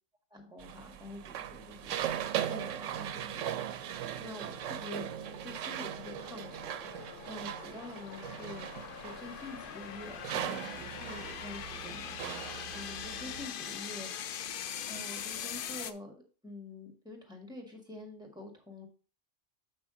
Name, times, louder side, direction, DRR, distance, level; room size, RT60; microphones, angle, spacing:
voice 1, 0.3-5.1 5.4-8.7 9.0-14.1 14.9-16.1 16.4-18.9, left 2 dB, 5° right, 2 dB, 1.8 m, -47 dB
sound 1, 0.6-13.5, right 10 dB, 85° right, 0.9 m, -39 dB
sound 2, 1.4-15.9, left 9 dB, 60° left, 0.6 m, -43 dB
7.3 x 6.0 x 3.7 m, 0.36 s
omnidirectional pair, 1.2 m